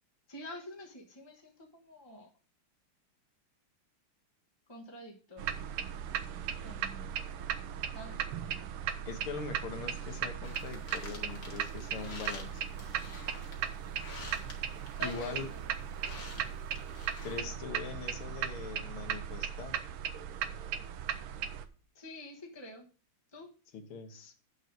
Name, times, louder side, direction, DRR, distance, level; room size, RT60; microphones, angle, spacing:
voice 1, 0.3-2.3 4.7-5.5 6.6-7.2 7.9-8.2 15.0-16.1 18.9-19.0 21.9-22.8 23.3-23.5, left 1 dB, 15° left, -1 dB, 1.1 m, -48 dB
sound 1, 5.4-21.6, right 9 dB, 90° right, 1.7 m, -37 dB
voice 2, 9.1-12.7 15.0-15.5 17.2-19.8 23.7-24.3, left 5 dB, 75° left, 7 dB, 2.1 m, -42 dB
sound 2, 10.4-17.4, left 3 dB, 45° left, 1.9 m, -49 dB
7.4 x 6.3 x 5.3 m, 0.37 s
omnidirectional pair, 2.4 m